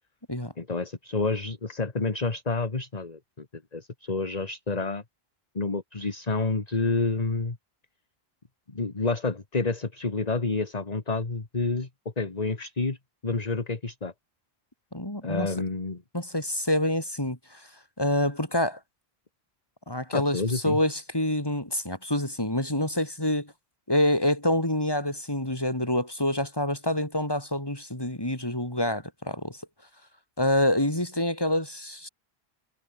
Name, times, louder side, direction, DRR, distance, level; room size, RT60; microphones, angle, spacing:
voice 1, 0.6-3.5 3.7-5.0 5.6-7.6 8.7-11.9 12.2-13.0 13.2-14.1 15.2-16.0 20.1-20.8, left 3 dB, 40° left, 1.9 m, -29 dB
voice 2, 14.9-15.5 16.1-17.7 18.0-18.8 19.9-23.5 23.9-29.6 30.4-32.1, left 1 dB, 25° left, 4.3 m, -27 dB
omnidirectional pair, 1.0 m